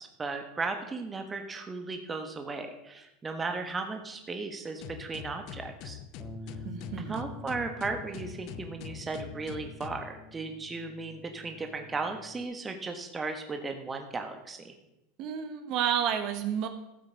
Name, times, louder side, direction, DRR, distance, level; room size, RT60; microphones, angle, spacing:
voice 1, 0.0-6.0 7.1-14.7, right 3 dB, 20° right, 5 dB, 1.4 m, -36 dB
sound 1, 4.8-10.1, left 10 dB, 55° left, 0.7 m, -44 dB
Bass guitar, 6.2-12.4, left 1 dB, ahead, 0.8 m, -48 dB
voice 2, 6.6-7.2 15.2-16.7, right 8 dB, 55° right, 7 dB, 1.5 m, -30 dB
14.0 x 7.6 x 5.2 m, 0.90 s
hypercardioid pair, 100°, 0 cm